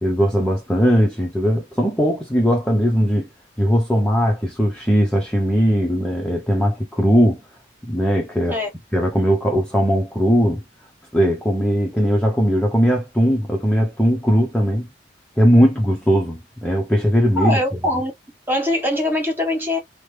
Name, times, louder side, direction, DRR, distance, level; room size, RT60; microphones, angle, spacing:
voice 1, 0.0-3.3 3.6-7.4 7.8-8.6 8.9-10.6 11.1-14.9 15.4-17.6, equal, 5° left, 0.5 m, -19 dB
voice 2, 17.4-18.1 18.5-19.8, left 1 dB, 10° right, 1.1 m, -22 dB
3.1 x 2.0 x 3.1 m
head